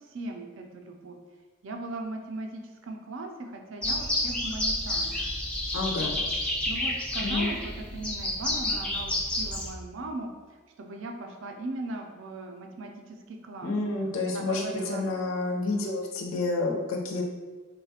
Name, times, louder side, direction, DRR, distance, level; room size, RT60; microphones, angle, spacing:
voice 1, 0.1-1.2 1.6-5.2 6.0-6.1 6.7-10.3 10.8-13.7 14.2-15.0, right 2 dB, 70° right, 3 dB, 0.4 m, -38 dB
sound 1, 3.8-9.7, left 1 dB, 5° left, 0.3 m, -30 dB
voice 2, 5.7-6.2 7.2-7.5 13.6-17.2, left 3 dB, 80° left, -1 dB, 0.5 m, -29 dB
3.9 x 2.2 x 2.7 m, 1.4 s
head